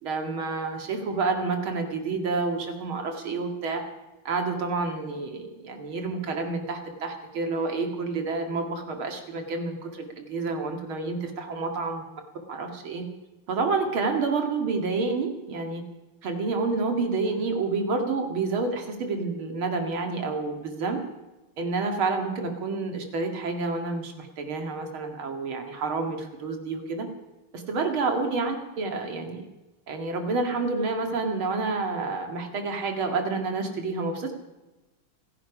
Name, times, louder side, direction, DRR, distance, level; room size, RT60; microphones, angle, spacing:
voice 1, 0.0-3.8 4.2-12.0 12.5-13.0 13.5-15.8 16.2-21.0 21.6-27.1 27.5-29.5 29.9-34.3, right 3 dB, 70° right, 4 dB, 2.8 m, -29 dB
27.5 x 10.5 x 5.0 m, 1.1 s
omnidirectional pair, 2.4 m